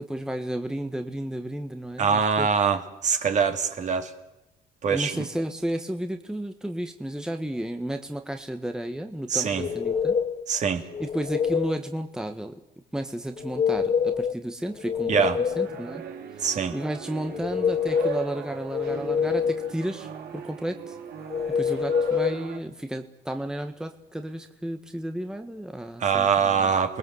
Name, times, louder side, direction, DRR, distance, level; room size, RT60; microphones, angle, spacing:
voice 1, 0.0-2.5 4.9-10.2 11.0-12.6 12.9-15.3 15.6-16.0 16.3-21.0 21.5-26.7, right 1 dB, 5° right, 6 dB, 1.5 m, -33 dB
voice 2, 2.0-4.1 4.8-5.3 9.3-9.7 10.5-10.8 15.1-15.4 16.4-16.7 26.0-27.0, right 6 dB, 45° right, 5 dB, 3.3 m, -23 dB
sound 1, 9.6-10.4 10.9-11.8 13.4-14.4 14.7-15.8 17.2-18.3 18.7-19.7 21.3-22.3, left 6 dB, 40° left, 1.5 m, -26 dB
sound 2, 15.5-22.6, right 7 dB, 70° right, 4.6 m, -39 dB
29.0 x 20.5 x 8.1 m, 0.93 s
cardioid pair, 110°, 17 cm